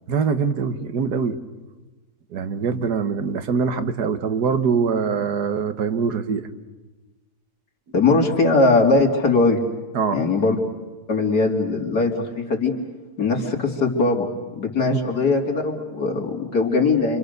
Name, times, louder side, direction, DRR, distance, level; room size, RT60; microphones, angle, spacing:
voice 1, 0.1-1.4 2.3-6.5 9.9-10.2 14.9-15.0, right 6 dB, 85° right, 9 dB, 1.8 m, -23 dB
voice 2, 7.9-9.6 10.1-10.6 11.1-12.7 13.2-14.3 14.5-17.2, left 3 dB, 85° left, 0 dB, 3.5 m, -20 dB
29.5 x 25.0 x 6.7 m, 1.2 s
omnidirectional pair, 1.7 m